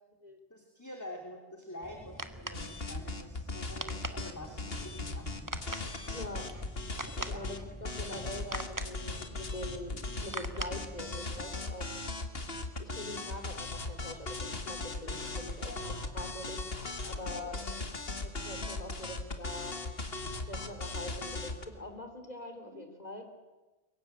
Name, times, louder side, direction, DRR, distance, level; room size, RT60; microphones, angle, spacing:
voice 1, 0.5-5.6 6.0-6.3 7.1-7.4 8.1-8.2 12.3-12.4 15.7-15.9 17.0-17.6 22.7-22.8, left 1 dB, 15° left, 2 dB, 2.9 m, -47 dB
sound 1, 1.8-11.5, right 1 dB, 20° right, 1.4 m, -44 dB
sound 2, 2.5-7.6 7.8-21.6, left 3 dB, 70° left, 2.1 m, -38 dB
voice 2, 6.1-6.5 7.3-11.9 12.8-17.6 18.2-19.8 20.5-23.2, left 1 dB, 40° left, 6 dB, 3.6 m, -44 dB
23.0 x 21.0 x 9.0 m, 1.1 s
omnidirectional pair, 1.1 m